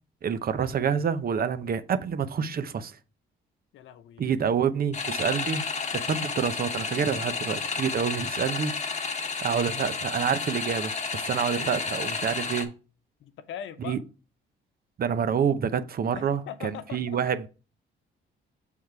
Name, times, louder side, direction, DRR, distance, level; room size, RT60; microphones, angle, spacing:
voice 1, 0.2-3.0 4.2-5.6 5.9-8.7 9.4-12.7 13.8-14.0 15.0-17.5, right 7 dB, 50° right, 0.7 m, -27 dB
voice 2, 3.7-4.3 11.6-11.8 13.2-14.0 16.1-17.2, left 9 dB, 75° left, 0.7 m, -41 dB
sound 1, 4.9-12.7, left 4 dB, 35° left, 1.1 m, -31 dB
6.4 x 3.6 x 4.6 m
cardioid pair, 90°, 20 cm